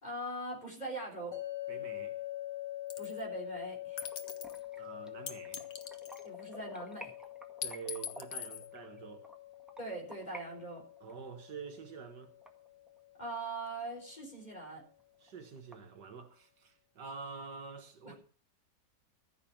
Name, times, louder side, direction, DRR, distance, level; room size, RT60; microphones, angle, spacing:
voice 1, 0.0-1.4 3.0-4.1 6.2-7.1 9.8-10.8 13.2-14.8 18.0-18.1, right 2 dB, 25° left, 4.1 m, -41 dB
sound 1, 1.3-14.4, left 15 dB, 90° left, 3.9 m, -45 dB
voice 2, 1.7-2.2 4.8-5.7 7.6-9.3 11.0-12.3 15.2-18.1, right 5 dB, 70° right, 2.0 m, -47 dB
sound 2, 2.9-3.2 4.0-4.6 5.3-6.5 7.6-8.7, left 8 dB, 65° left, 1.7 m, -41 dB
sound 3, 4.0-10.4 10.8-13.3 13.7-13.8 14.2-14.3 14.6-14.7 15.0-15.7, equal, ahead, 1.6 m, -53 dB
15.0 x 7.0 x 7.2 m
omnidirectional pair, 1.9 m